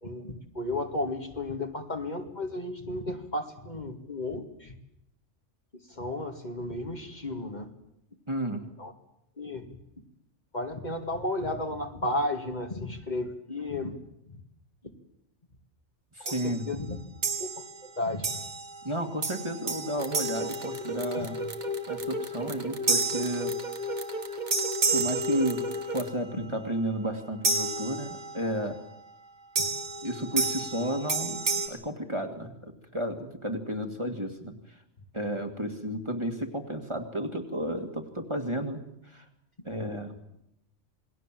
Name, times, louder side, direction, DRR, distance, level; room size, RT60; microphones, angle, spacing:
voice 1, 0.0-4.7 5.9-7.7 8.8-8.9 9.4-9.8 10.5-14.0 14.3-14.4 16.2-17.0 17.4-17.5 17.8-18.4 21.2-21.3 26.4-26.5 29.6-29.7, left 2 dB, 40° left, 3 dB, 2.5 m, -33 dB
voice 2, 8.3-8.7 16.2-16.7 18.8-21.5 21.9-23.5 24.9-28.8 30.0-34.6 35.1-39.2 39.6-40.1, right 1 dB, 25° right, 4 dB, 2.3 m, -32 dB
sound 1, 16.3-16.6 17.2-17.8 18.2-18.8 19.2-21.4 22.9-24.1 24.5-26.0 27.4-28.5 29.6-31.7, right 3 dB, 80° right, 2.9 m, -31 dB
sound 2, 20.0-26.1, left 1 dB, 40° right, 1.7 m, -34 dB
27.5 x 21.0 x 7.7 m, 0.81 s
omnidirectional pair, 1.2 m